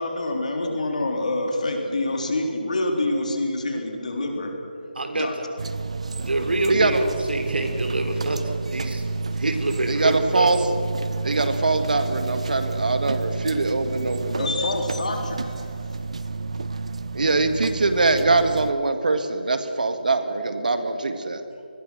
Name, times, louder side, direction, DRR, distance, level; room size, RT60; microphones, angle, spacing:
voice 1, 0.0-4.5 5.1-5.3 14.4-15.7, left 2 dB, 50° left, 2 dB, 3.9 m, -26 dB
voice 2, 5.0-5.3 6.2-9.0 9.3-10.5, right 2 dB, 85° right, 6 dB, 3.8 m, -26 dB
sound 1, 5.6-18.7, right 3 dB, 40° right, 0.8 m, -30 dB
voice 3, 6.7-7.0 9.4-9.5 9.9-10.6 11.2-14.5 17.1-21.4, right 3 dB, 55° right, 8 dB, 1.9 m, -22 dB
26.0 x 21.0 x 6.3 m, 2.8 s
figure-of-eight pair, 175°, 5 cm